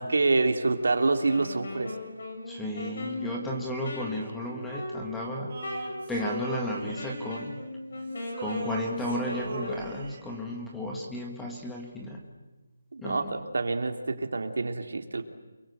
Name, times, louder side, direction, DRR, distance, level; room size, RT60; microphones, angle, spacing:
voice 1, 0.0-1.9 12.9-15.2, right 3 dB, 65° right, 6 dB, 3.1 m, -27 dB
Wind instrument woodwind instrument, 1.2-9.9, left 1 dB, 45° left, 7.4 m, -38 dB
voice 2, 2.5-5.5 5.8-7.6 8.4-12.2 13.0-13.4, left 1 dB, 5° left, -1 dB, 1.6 m, -34 dB
Male singing, 5.5-7.9 8.2-10.4, right 3 dB, 25° right, 3.9 m, -39 dB
29.5 x 23.0 x 8.1 m, 1.1 s
hypercardioid pair, 180°, 0 cm